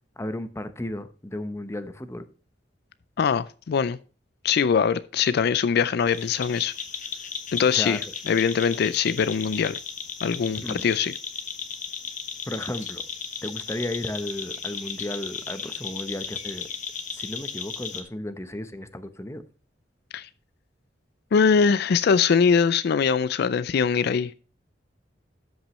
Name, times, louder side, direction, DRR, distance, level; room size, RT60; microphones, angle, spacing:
voice 1, 0.2-2.2 7.7-8.0 10.5-10.8 12.5-13.0 13.4-16.7 17.1-19.4, left 1 dB, 15° left, 0.8 m, -34 dB
voice 2, 3.2-4.0 4.4-6.7 7.5-8.0 8.3-9.7 10.2-11.1 20.1-20.3 21.3-24.3, left 6 dB, 60° left, 0.4 m, -22 dB
sound 1, 6.1-18.0, left 6 dB, 45° left, 1.2 m, -35 dB
13.0 x 6.0 x 3.1 m
head